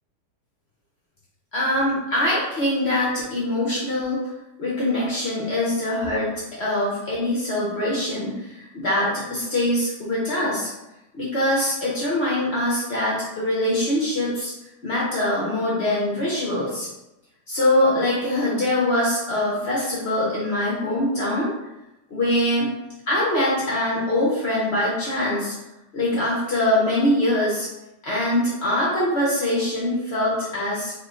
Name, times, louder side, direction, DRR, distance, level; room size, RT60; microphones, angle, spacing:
voice 1, 1.5-4.3 4.6-6.3 6.6-10.7 11.1-14.5 14.8-16.9 17.5-21.5 22.1-22.7 23.1-25.5 25.9-27.7 28.0-30.9, left 1 dB, 80° left, -6 dB, 0.5 m, -23 dB
3.5 x 2.2 x 3.6 m, 0.96 s
omnidirectional pair, 2.1 m